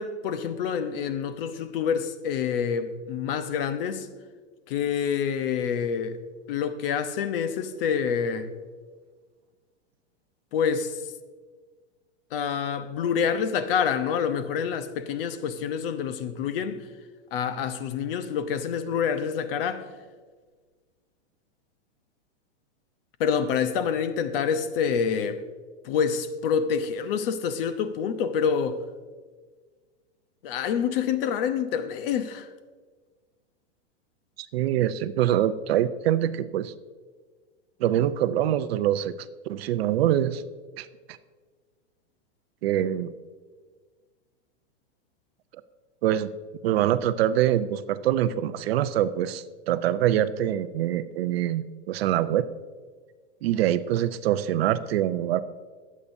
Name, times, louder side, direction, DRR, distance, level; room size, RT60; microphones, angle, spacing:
voice 1, 0.0-4.1 4.7-6.2 6.5-8.5 10.5-11.1 12.3-16.9 17.3-19.9 23.2-25.4 25.8-28.8 30.4-32.5, left 7 dB, 50° left, 0.9 m, -27 dB
voice 2, 34.4-36.7 37.8-39.1 39.5-40.4 40.8-41.2 42.6-43.1 46.0-46.3 46.6-52.5 53.4-55.4, right 11 dB, 55° right, 0.6 m, -24 dB
21.5 x 8.4 x 2.7 m
supercardioid pair, 155°, 37 cm